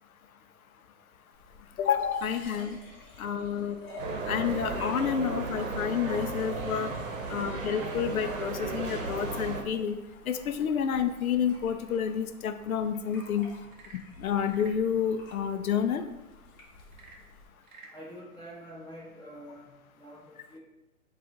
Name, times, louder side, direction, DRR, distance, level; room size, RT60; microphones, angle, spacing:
sound 1, 1.3-17.5, left 2 dB, 30° left, 1.3 m, -51 dB
voice 1, 1.8-2.8 3.2-3.8 4.3-6.9 7.3-10.0 10.3-13.5 14.2-16.0, left 8 dB, 70° left, 9 dB, 0.5 m, -29 dB
sound 2, 4.0-9.6, right 3 dB, 60° right, 0.9 m, -35 dB
Frog / Percussion / Wood, 13.6-14.9 16.9-18.0, right 3 dB, 35° right, 0.6 m, -52 dB
voice 2, 17.9-20.6, equal, 10° left, -9 dB, 1.4 m, -47 dB
4.8 x 2.5 x 3.8 m, 1.0 s
hypercardioid pair, 140°, 44 cm